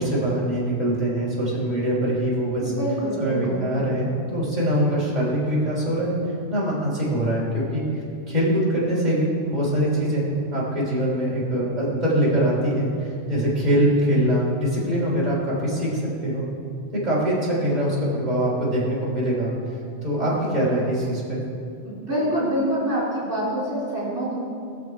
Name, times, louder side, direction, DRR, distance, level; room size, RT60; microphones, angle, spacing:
voice 1, 0.0-2.6 3.2-6.2 6.5-7.8 8.3-16.4 16.9-19.5 20.0-21.4, right 1 dB, 35° right, -6 dB, 3.6 m, -23 dB
voice 2, 2.6-3.7 21.8-24.4, equal, 70° right, -7 dB, 3.5 m, -26 dB
20.0 x 7.2 x 4.7 m, 2.5 s
omnidirectional pair, 1.2 m